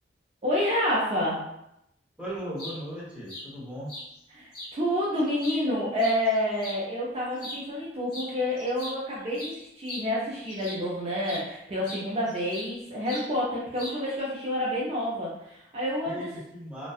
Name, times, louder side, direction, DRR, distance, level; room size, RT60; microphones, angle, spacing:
voice 1, 0.4-1.4 4.3-16.3, left 1 dB, 35° right, -6 dB, 0.4 m, -28 dB
voice 2, 2.2-3.9 16.0-16.9, equal, 5° right, -7 dB, 0.8 m, -37 dB
sound 1, 2.4-2.8 3.3-3.5 3.9-4.1 4.5-4.7 5.2-6.8 7.3-7.6 8.1-8.3 8.6-10.9 11.3-11.5 11.9-12.8 13.1-13.3 13.8-14.2, left 1 dB, 60° left, 1.2 m, -40 dB
2.6 x 2.2 x 2.3 m, 0.82 s
head